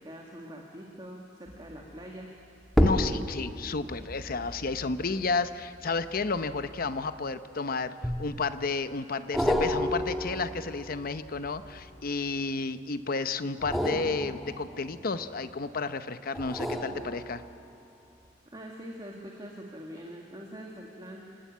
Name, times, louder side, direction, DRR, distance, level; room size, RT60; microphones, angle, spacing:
voice 1, 0.0-2.3 4.4-4.5 18.5-21.2, equal, 25° right, -1 dB, 1.9 m, -44 dB
sound 1, 1.5-1.8 2.7-7.3 8.0-8.7 9.3-12.3 13.5-15.6 16.3-17.8 18.2-18.3, equal, ahead, 1.5 m, -32 dB
voice 2, 2.8-17.4, left 4 dB, 50° left, 11 dB, 0.8 m, -32 dB
28.0 x 13.0 x 9.3 m, 2.4 s
head